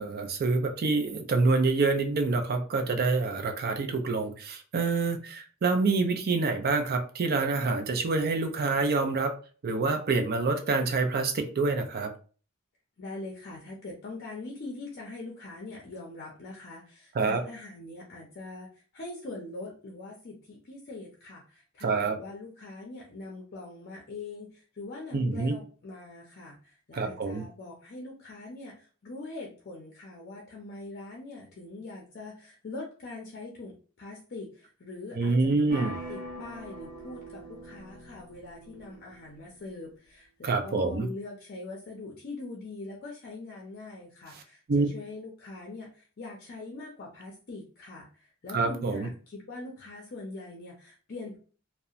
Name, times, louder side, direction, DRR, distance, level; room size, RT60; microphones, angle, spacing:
voice 1, 0.0-9.3 9.6-12.1 17.2-17.4 21.8-22.2 25.1-25.6 26.9-27.4 35.1-35.9 40.4-41.1 44.7-44.9 48.5-49.1, right 3 dB, 45° right, 6 dB, 0.4 m, -26 dB
voice 2, 13.0-51.4, left 2 dB, 45° left, -1 dB, 0.5 m, -43 dB
sound 1, 35.7-39.5, right 2 dB, 20° right, 0.9 m, -42 dB
2.7 x 2.1 x 2.4 m, 0.39 s
head